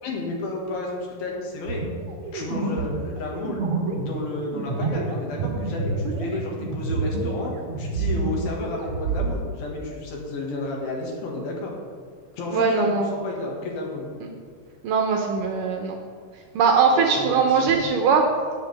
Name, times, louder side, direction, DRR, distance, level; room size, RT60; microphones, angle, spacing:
voice 1, 0.0-1.8 2.3-3.6 3.9-7.5 7.8-11.7 12.3-14.1 16.9-17.7, left 2 dB, 70° left, -1 dB, 3.5 m, -32 dB
sound 1, 1.7-7.4 7.7-9.3, right 4 dB, 50° right, 1.8 m, -28 dB
voice 2, 12.5-13.1 14.8-15.9 16.6-18.3, right 5 dB, 75° right, 3 dB, 2.1 m, -20 dB
17.5 x 7.6 x 3.4 m, 2.1 s
omnidirectional pair, 4.5 m